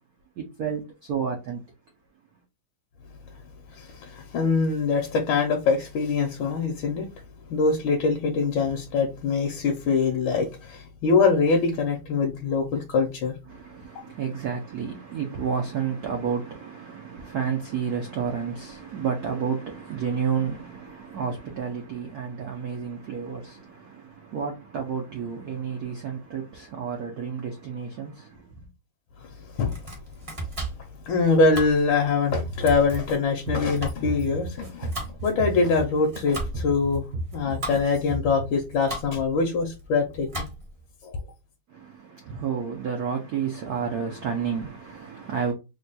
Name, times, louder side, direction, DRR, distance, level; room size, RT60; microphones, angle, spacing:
voice 1, 0.4-1.6 13.5-28.7 41.7-45.5, right 7 dB, 80° right, 0.8 m, -31 dB
voice 2, 3.7-7.1 7.5-13.3 29.6-29.7 31.0-37.0 37.3-40.5 41.0-41.2, left 4 dB, 75° left, 1.3 m, -24 dB
Domestic sounds home sounds, 29.5-40.9, right 2 dB, 30° right, 0.5 m, -38 dB
sound 1, 32.3-33.2 33.5-36.2 36.5-37.8 38.1-38.5, right 1 dB, 55° right, 0.9 m, -33 dB
3.5 x 2.2 x 3.9 m
omnidirectional pair, 2.4 m